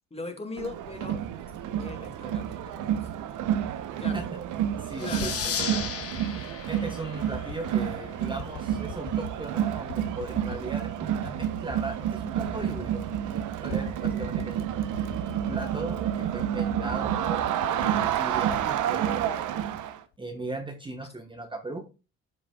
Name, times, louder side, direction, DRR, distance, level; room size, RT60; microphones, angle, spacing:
voice 1, 0.1-1.2 1.8-3.1 4.0-4.3 5.0-5.8, left 3 dB, 20° left, 5 dB, 2.0 m, -39 dB
Crowd, 0.6-20.0, right 10 dB, 85° right, 0.9 m, -30 dB
voice 2, 4.8-5.9 6.7-14.7 15.5-17.4 17.8-19.5 20.2-21.8, right 2 dB, 15° right, 4 dB, 1.2 m, -38 dB
sound 1, 5.0-6.3 7.3-7.9 8.4-9.4 9.9-10.7 11.1-11.9 12.1-12.2 12.5-13.3 13.7-14.6 14.9-15.7 16.2-19.3 19.7-20.1, left 11 dB, 70° left, 0.6 m, -43 dB
sound 2, 5.0-8.2, left 8 dB, 50° left, 1.2 m, -35 dB
12.5 x 5.1 x 2.3 m, 0.30 s
cardioid pair, 90°, 30 cm